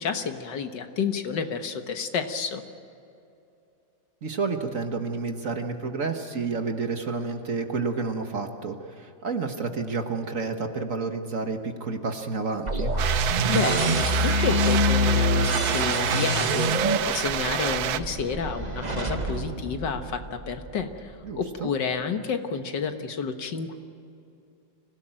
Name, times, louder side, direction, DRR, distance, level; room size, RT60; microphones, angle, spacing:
voice 1, 0.0-2.6 13.2-23.8, left 6 dB, 70° left, 7 dB, 1.9 m, -30 dB
voice 2, 4.2-12.9 21.2-21.7, right 4 dB, 45° right, 5 dB, 1.6 m, -30 dB
sound 1, 12.7-20.6, equal, 25° right, 1.3 m, -26 dB
sound 2, 13.0-18.0, right 10 dB, 65° right, 1.1 m, -28 dB
25.5 x 17.0 x 9.0 m, 2.6 s
omnidirectional pair, 2.0 m